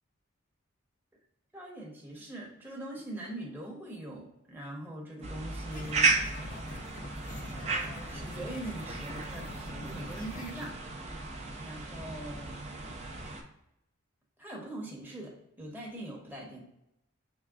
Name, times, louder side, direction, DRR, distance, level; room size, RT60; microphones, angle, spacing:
voice 1, 1.5-6.7 7.5-10.8 11.6-12.5 14.4-16.6, right 1 dB, 10° right, -3 dB, 0.8 m, -42 dB
sound 1, 5.2-13.4, right 4 dB, 35° right, 0.5 m, -34 dB
sound 2, 5.7-10.7, left 3 dB, 40° left, 0.5 m, -47 dB
3.6 x 3.2 x 2.3 m, 0.82 s
head